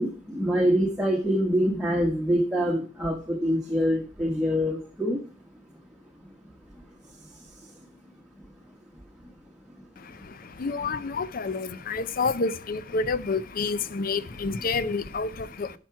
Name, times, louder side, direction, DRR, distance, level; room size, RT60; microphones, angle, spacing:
voice 1, 0.0-5.2, equal, 5° right, 1.2 m, -25 dB
voice 2, 10.0-15.8, left 4 dB, 50° left, 0.6 m, -29 dB
10.5 x 5.9 x 4.7 m
head